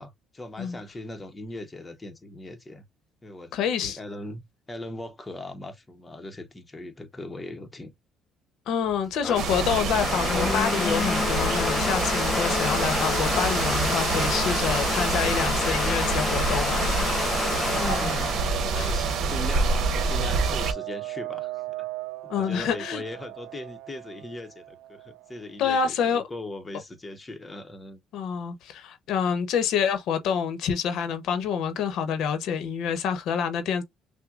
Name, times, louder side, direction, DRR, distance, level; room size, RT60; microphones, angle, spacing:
voice 1, 0.0-2.8 3.2-3.5 3.8-7.9 17.6-21.9 22.4-28.0, left 1 dB, 20° left, 0.9 m, -39 dB
voice 2, 3.5-4.0 8.7-16.9 18.7-18.9 22.3-23.0 25.6-26.2 28.1-33.8, left 7 dB, 70° left, 0.9 m, -27 dB
Domestic sounds home sounds, 8.9-19.6, left 5 dB, 35° left, 0.4 m, -29 dB
sound 1, 9.3-20.7, right 5 dB, 65° right, 1.1 m, -27 dB
sound 2, 16.3-25.5, right 17 dB, 85° right, 0.5 m, -39 dB
6.1 x 2.2 x 2.4 m
cardioid pair, 105°, 0 cm